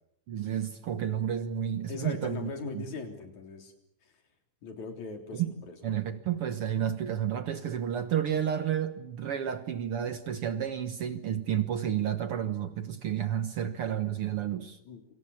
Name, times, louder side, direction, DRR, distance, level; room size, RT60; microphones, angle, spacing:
voice 1, 0.3-2.8 5.3-5.5 5.8-14.8, right 9 dB, 60° right, 10 dB, 1.8 m, -31 dB
voice 2, 1.9-3.7 4.0-4.1 4.6-5.8 14.8-15.0, left 4 dB, 70° left, 5 dB, 4.9 m, -39 dB
29.0 x 25.5 x 7.2 m, 0.73 s
omnidirectional pair, 3.5 m